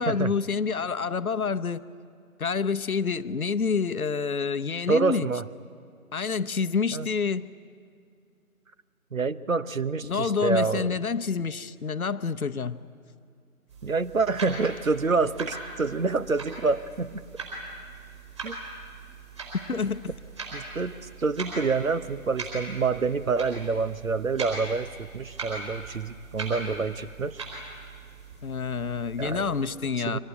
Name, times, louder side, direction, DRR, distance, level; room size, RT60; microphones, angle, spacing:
voice 1, 0.0-1.8 2.4-5.3 6.1-7.4 10.0-12.8 19.7-20.0 28.4-30.2, left 5 dB, 70° left, 11 dB, 0.9 m, -28 dB
voice 2, 4.9-5.5 6.9-7.1 9.1-11.0 13.8-17.2 18.4-18.6 20.5-27.4 29.2-29.5 30.0-30.2, right 4 dB, 65° right, 14 dB, 1.0 m, -27 dB
sound 1, 13.7-29.6, right 3 dB, 20° right, 4.4 m, -40 dB
24.0 x 18.5 x 9.7 m, 2.3 s
figure-of-eight pair, 165°, 44 cm